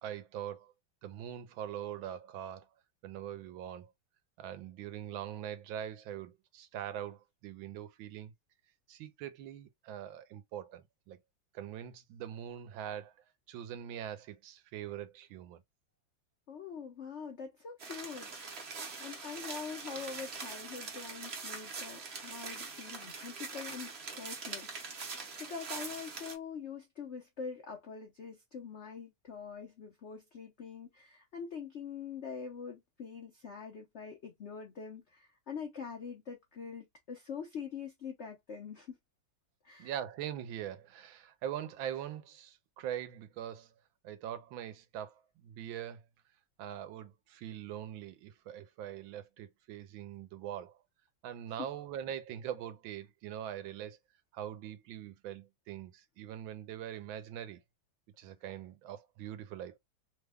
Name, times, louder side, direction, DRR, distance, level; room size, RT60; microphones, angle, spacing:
voice 1, 0.0-0.7 1.0-2.7 3.0-3.9 4.4-8.3 8.9-11.2 11.5-13.1 13.5-15.6 18.9-19.1 39.8-43.7 44.0-46.0 46.6-50.8 51.2-54.0 54.3-57.6 58.2-59.8, right 10 dB, 80° right, 1.4 m, -42 dB
voice 2, 16.5-18.3 19.0-23.9 24.1-25.1 25.5-38.9 39.6-39.9, left 6 dB, 75° left, 0.6 m, -44 dB
sound 1, 17.8-26.4, right 4 dB, 45° right, 0.8 m, -43 dB
3.4 x 2.2 x 3.4 m
omnidirectional pair, 2.2 m